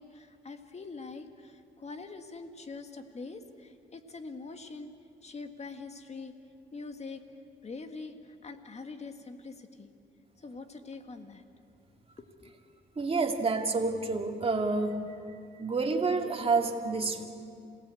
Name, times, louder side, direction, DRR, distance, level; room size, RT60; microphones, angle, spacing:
voice 1, 0.0-4.9 5.2-6.3 6.7-7.2 7.6-8.1 8.4-9.9 10.4-11.4 12.4-12.5, left 4 dB, 35° left, 7 dB, 1.9 m, -44 dB
voice 2, 13.0-14.9 15.6-17.3, right 4 dB, 30° right, 3 dB, 2.4 m, -28 dB
27.0 x 17.5 x 8.5 m, 2.6 s
cardioid pair, 90°, 20 cm